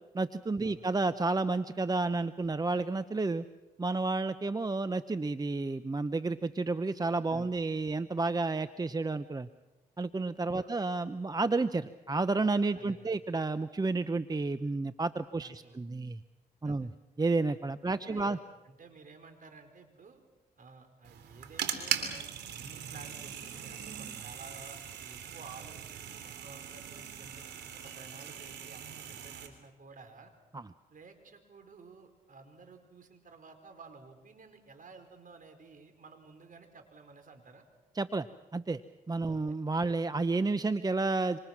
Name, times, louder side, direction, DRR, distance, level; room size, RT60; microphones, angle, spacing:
voice 1, 0.1-3.4 3.8-9.5 10.0-16.2 16.6-16.9 17.2-18.4 30.5-30.6 38.0-38.3 38.5-38.8 39.1-41.4, right 3 dB, 20° right, 13 dB, 0.9 m, -31 dB
voice 2, 12.7-13.2 15.4-15.8 16.6-16.9 17.8-20.2 20.6-27.4 27.7-30.3 30.9-37.6 39.3-39.5, right 4 dB, 50° right, 7 dB, 4.9 m, -53 dB
sound 1, 21.0-29.5, right 9 dB, 75° right, 3.3 m, -40 dB
27.0 x 26.5 x 6.1 m, 1.1 s
supercardioid pair, 60°, 17 cm